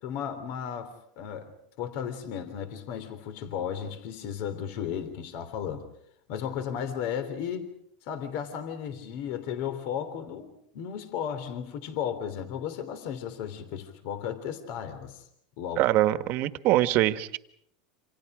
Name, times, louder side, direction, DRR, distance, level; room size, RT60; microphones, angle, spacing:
voice 1, 0.0-5.9 6.3-7.7 8.0-15.2 15.6-15.8, left 8 dB, 60° left, 10 dB, 3.3 m, -34 dB
voice 2, 15.8-17.4, right 15 dB, 50° right, 12 dB, 1.5 m, -23 dB
28.5 x 27.0 x 5.0 m, 0.72 s
supercardioid pair, 125°, 4 cm